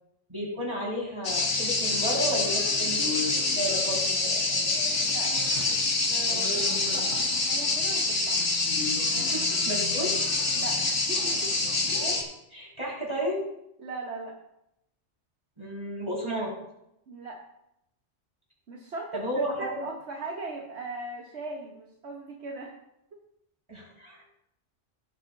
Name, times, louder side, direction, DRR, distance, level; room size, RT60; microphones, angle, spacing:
voice 1, 0.3-3.2 3.6-4.7 9.3-10.1 11.9-12.2 12.5-13.4 15.6-16.5 19.1-19.8 23.7-24.2, equal, 25° right, -6 dB, 4.8 m, -32 dB
sound 1, 1.2-12.2, left 3 dB, 80° left, 2.0 m, -26 dB
voice 2, 5.0-5.8 6.1-8.4 10.5-11.5 13.8-14.4 17.1-17.4 18.7-22.7, right 3 dB, 70° right, 0 dB, 1.4 m, -39 dB
17.0 x 8.3 x 2.6 m, 0.81 s
omnidirectional pair, 1.2 m